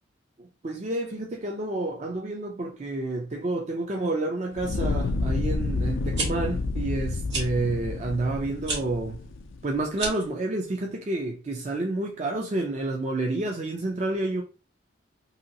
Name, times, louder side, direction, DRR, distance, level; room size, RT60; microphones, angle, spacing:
voice 1, 0.4-9.2 9.6-14.4, right 2 dB, 35° right, 0.4 m, -29 dB
Fire, 4.5-9.7, left 3 dB, 90° left, 0.4 m, -29 dB
sound 1, 6.0-6.3 7.3-7.5 8.6-8.8 9.9-10.3, right 3 dB, 60° right, 1.5 m, -30 dB
2.9 x 2.8 x 2.7 m
head